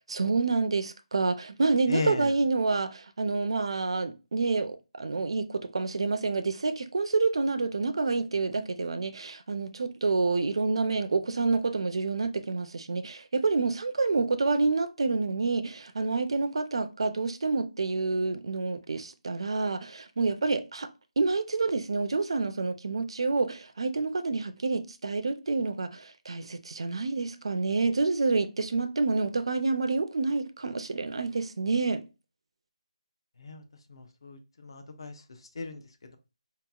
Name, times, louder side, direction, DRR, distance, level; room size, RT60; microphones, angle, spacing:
voice 1, 0.1-20.9 21.2-32.0, right 3 dB, 45° right, 0.4 m, -28 dB
voice 2, 1.9-2.3 33.4-33.6 33.9-35.1 35.6-35.8, left 3 dB, 45° left, 0.6 m, -35 dB
4.5 x 2.8 x 2.3 m
hypercardioid pair, 180°, 4 cm